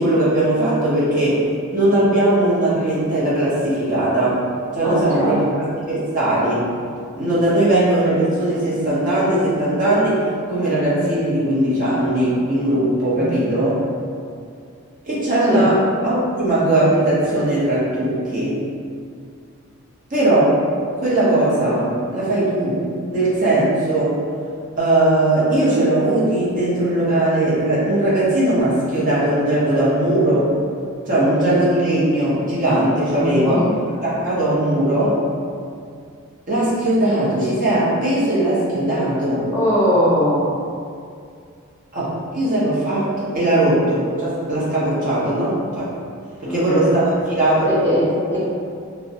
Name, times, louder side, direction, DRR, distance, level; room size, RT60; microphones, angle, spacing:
voice 1, 0.0-1.4 1.7-4.4 4.7-6.7 7.2-13.8 15.1-15.8 16.0-18.6 20.1-20.6 21.0-22.8 23.1-24.1 24.8-30.5 31.1-33.6 34.2-35.2 36.5-39.5 41.9-45.9 46.4-47.7, right 1 dB, 35° right, -9 dB, 0.6 m, -19 dB
voice 2, 4.8-5.4 13.1-13.3 15.5-15.6 33.2-33.7 39.5-40.4 46.4-46.8 47.7-48.4, equal, 10° left, -11 dB, 0.5 m, -20 dB
2.4 x 2.1 x 2.6 m, 2.3 s
head